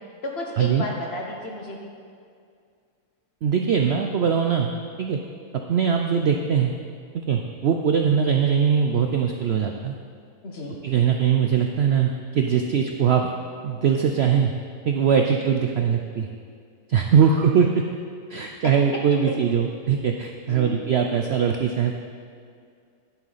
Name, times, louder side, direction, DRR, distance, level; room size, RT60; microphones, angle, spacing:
voice 1, 0.2-1.9 10.4-10.8 15.3-15.4 17.2-17.3 19.3-19.4 20.4-20.8, left 1 dB, 45° left, 0 dB, 1.3 m, -33 dB
voice 2, 3.4-4.7 5.0-5.2 5.7-6.7 7.3-10.0 10.8-13.3 13.6-14.5 14.8-16.3 16.9-17.8 18.3-21.9, right 7 dB, 85° right, 4 dB, 0.5 m, -21 dB
10.5 x 7.6 x 4.1 m, 2.3 s
omnidirectional pair, 1.7 m